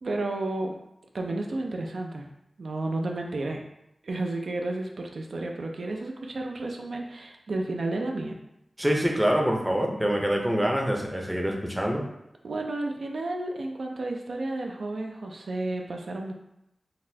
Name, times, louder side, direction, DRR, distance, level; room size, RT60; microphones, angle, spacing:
voice 1, 0.0-0.7 1.1-2.3 2.6-3.6 4.0-8.3 12.4-16.3, right 2 dB, 80° right, 2 dB, 0.3 m, -32 dB
voice 2, 8.8-12.0, equal, 5° right, 0 dB, 0.5 m, -25 dB
4.0 x 2.1 x 2.6 m, 0.83 s
wide cardioid pair, 75°, 0 cm